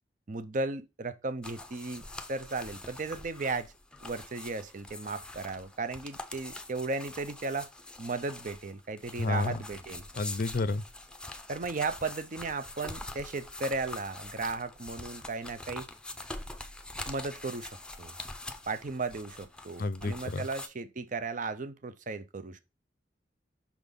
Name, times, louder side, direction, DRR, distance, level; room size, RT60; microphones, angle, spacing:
voice 1, 0.3-2.0 2.3-3.7 4.0-7.7 8.0-10.0 11.5-15.9 17.1-18.1 18.7-22.6, right 3 dB, 45° right, 0.6 m, -35 dB
sound 1, 1.4-20.7, left 2 dB, 5° left, 0.6 m, -44 dB
voice 2, 9.2-9.6 10.2-10.8 19.8-20.4, left 3 dB, 50° left, 0.5 m, -30 dB
5.9 x 4.0 x 5.1 m
head